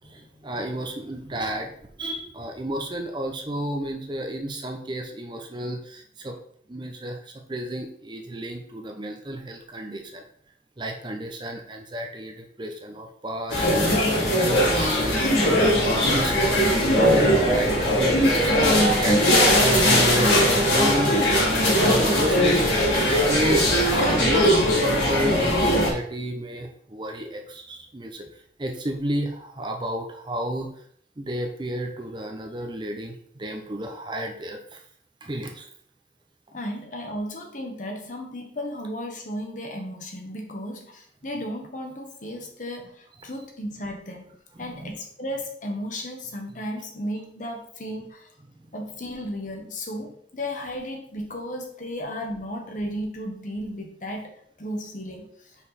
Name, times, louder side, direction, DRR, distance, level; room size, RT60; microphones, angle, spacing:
voice 1, 0.0-6.4 6.7-10.2 10.8-13.7 14.1-15.5 15.8-23.9 24.2-30.7 31.2-34.8 35.2-35.7 44.5-44.9 48.5-48.7, right 1 dB, 25° right, 3 dB, 0.6 m, -32 dB
sound 1, 13.5-25.9, equal, 85° left, 2.8 m, -20 dB
voice 2, 36.5-44.3 44.6-48.3 48.7-55.3, equal, 45° left, 2 dB, 1.1 m, -34 dB
5.3 x 4.5 x 4.1 m, 0.64 s
head